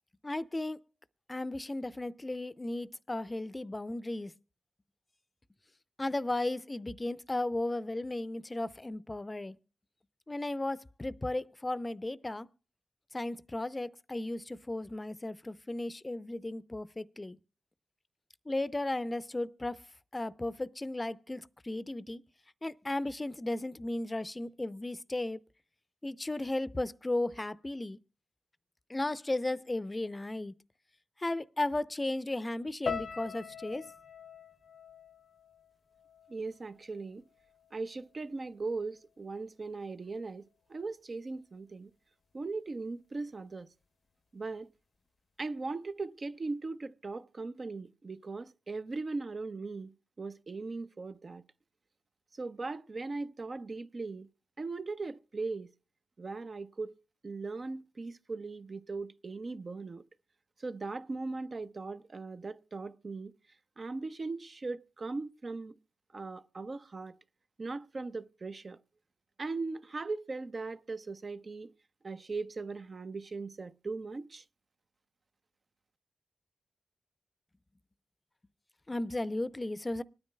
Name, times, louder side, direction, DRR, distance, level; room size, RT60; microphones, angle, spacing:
voice 1, 0.2-0.8 1.3-4.3 6.0-9.6 10.3-12.5 13.1-17.4 18.5-19.8 20.1-22.2 22.6-25.4 26.0-28.0 28.9-30.5 31.2-33.8 78.9-80.0, left 2 dB, 25° left, 0.5 m, -35 dB
sound 1, 32.9-37.1 37.3-38.1 38.7-38.9, left 6 dB, 70° left, 0.6 m, -43 dB
voice 2, 36.3-37.2 37.7-40.4 40.7-41.9 42.3-43.7 44.3-44.7 45.4-51.4 52.4-54.3 54.6-55.7 56.2-56.9 57.2-60.0 60.6-63.3 63.8-65.7 66.1-67.2 67.6-68.8 69.4-71.7 72.0-74.4, right 3 dB, 50° right, 0.6 m, -39 dB
25.5 x 9.7 x 2.2 m
cardioid pair, 50°, 0 cm